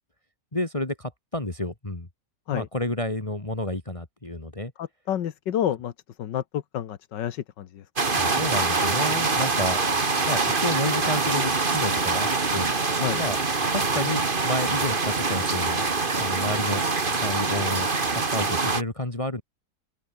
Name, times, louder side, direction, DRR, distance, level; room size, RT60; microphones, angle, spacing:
voice 1, 0.5-2.1 2.5-4.7 8.2-9.9 10.3-12.7 13.1-13.4 13.7-15.9 16.2-16.8 17.1-19.4, left 1 dB, 20° left, 2.3 m, -30 dB
voice 2, 4.8-5.9 6.2-7.8 13.0-13.2, left 10 dB, 85° left, 1.8 m, -29 dB
sound 1, 8.0-18.8, right 3 dB, 30° right, 2.0 m, -24 dB
open air
omnidirectional pair, 1.9 m